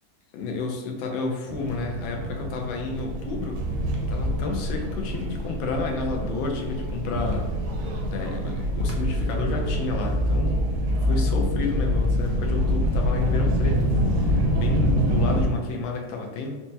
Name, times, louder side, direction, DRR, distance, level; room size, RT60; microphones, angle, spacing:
voice 1, 0.3-3.6 4.1-7.5 8.1-10.6 11.0-13.9 14.2-16.5, left 3 dB, 90° left, 2 dB, 1.4 m, -31 dB
Jet Star Rough Landing, 1.5-15.4, equal, 70° right, 0.9 m, -25 dB
4.2 x 2.2 x 2.6 m, 1.2 s
omnidirectional pair, 2.1 m